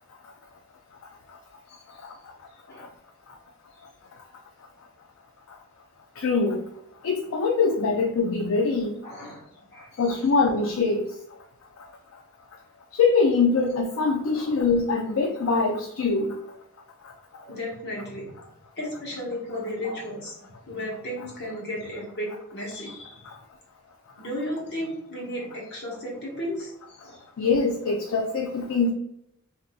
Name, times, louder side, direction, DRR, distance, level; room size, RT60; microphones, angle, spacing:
voice 1, 1.7-2.0 2.7-2.9 9.0-10.3 14.1-14.6 17.4-18.3 18.8-20.3 20.7-23.2 24.2-27.2, left 1 dB, 50° left, -4 dB, 1.3 m, -35 dB
voice 2, 6.2-6.6 7.0-8.9 10.0-11.0 13.0-16.3 23.3-23.4 27.4-28.9, left 4 dB, 70° left, 2 dB, 0.4 m, -23 dB
3.6 x 2.7 x 2.3 m, 0.77 s
head